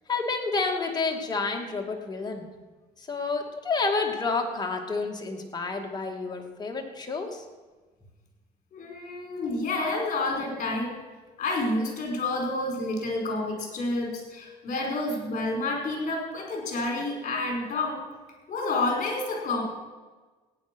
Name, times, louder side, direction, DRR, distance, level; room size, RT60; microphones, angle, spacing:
voice 1, 0.1-2.5 3.1-7.4, left 3 dB, 25° left, 1 dB, 2.6 m, -29 dB
voice 2, 8.7-10.9 11.4-18.0 18.5-19.6, left 2 dB, 45° left, 0 dB, 5.4 m, -29 dB
16.0 x 9.7 x 6.3 m, 1.3 s
cardioid pair, 110°, 17 cm